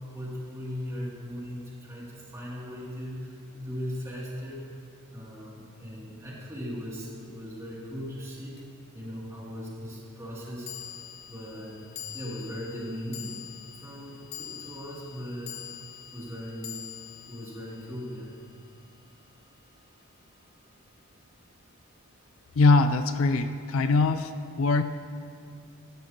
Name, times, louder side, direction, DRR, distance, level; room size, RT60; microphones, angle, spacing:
voice 1, 0.1-4.7 5.1-8.6 8.9-10.7 11.3-11.8 12.1-13.4 13.7-15.6 16.1-16.8 17.3-18.3, equal, 15° right, -6 dB, 2.6 m, -38 dB
sound 1, 8.6-8.7 10.7-19.1, left 10 dB, 50° left, 0.9 m, -44 dB
voice 2, 22.6-24.3 24.6-24.8, left 3 dB, 65° left, 10 dB, 0.4 m, -22 dB
15.0 x 12.5 x 2.9 m, 2.3 s
head